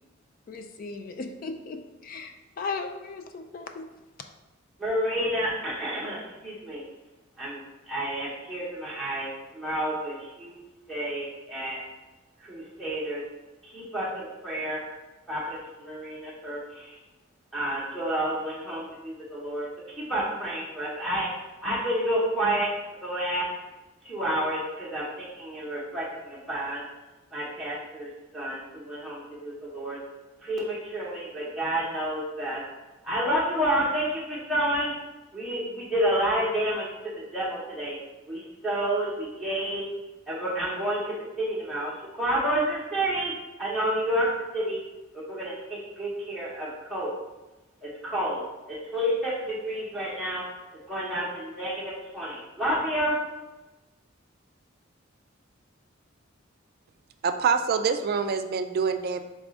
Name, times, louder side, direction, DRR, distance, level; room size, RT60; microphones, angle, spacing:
voice 1, 0.5-3.9, left 4 dB, 45° left, 6 dB, 0.3 m, -37 dB
voice 2, 4.8-6.8 7.4-10.6 10.9-11.8 12.4-13.2 13.7-14.8 15.3-17.0 17.5-19.7 20.0-21.3 21.6-22.7 23.0-23.5 24.0-26.8 27.3-30.0 30.4-32.6 33.0-34.9 35.3-36.9 37.1-38.0 38.3-39.8 40.3-43.3 43.6-44.3 44.5-44.8 45.1-47.1 47.8-50.4 50.9-53.1, right 1 dB, ahead, -8 dB, 0.9 m, -30 dB
voice 3, 57.2-59.2, right 5 dB, 50° right, 8 dB, 0.3 m, -25 dB
4.1 x 3.5 x 3.7 m, 1.1 s
head